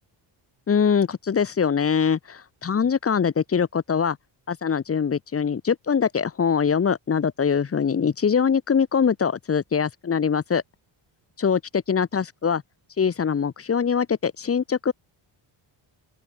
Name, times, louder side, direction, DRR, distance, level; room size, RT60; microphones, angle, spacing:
voice 1, 0.7-4.2 4.5-10.6 11.4-12.6 13.0-14.9, left 6 dB, 30° left, 1.4 m, -23 dB
open air
cardioid pair, 150°, 47 cm